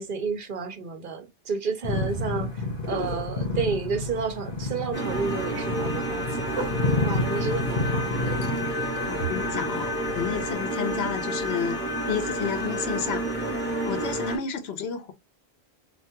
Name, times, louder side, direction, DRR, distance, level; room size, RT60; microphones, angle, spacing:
voice 1, 0.0-6.5 7.0-8.1, right 5 dB, 60° right, 0.8 m, -31 dB
sound 1, 1.8-10.5, left 2 dB, 55° left, 1.4 m, -30 dB
sound 2, 4.9-14.4, right 1 dB, 10° left, 1.8 m, -30 dB
voice 2, 9.1-11.8 12.1-13.5 13.8-15.1, left 7 dB, 85° left, 1.0 m, -31 dB
3.3 x 2.5 x 2.8 m
omnidirectional pair, 1.0 m